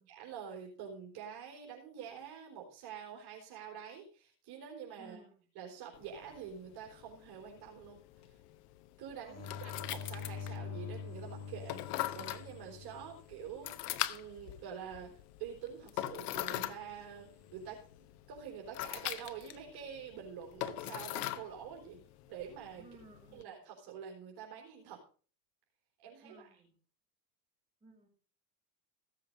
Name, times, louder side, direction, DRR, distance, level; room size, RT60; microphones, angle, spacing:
voice 1, 0.2-5.2 5.6-8.4 9.0-15.1 15.4-17.8 18.3-22.0 22.3-22.9 23.3-25.0 26.0-26.5, right 7 dB, 50° right, 0 dB, 3.8 m, -47 dB
voice 2, 5.0-5.5 9.2-9.7 22.8-23.7 26.2-26.7 27.8-28.1, right 2 dB, 10° right, -2 dB, 6.2 m, -58 dB
sound 1, 5.9-23.4, left 15 dB, 65° left, 1.1 m, -43 dB
sound 2, 9.3-13.9 17.2-17.7, left 6 dB, 30° left, 1.7 m, -45 dB
16.0 x 7.6 x 5.3 m, 0.40 s
supercardioid pair, 110°, 49 cm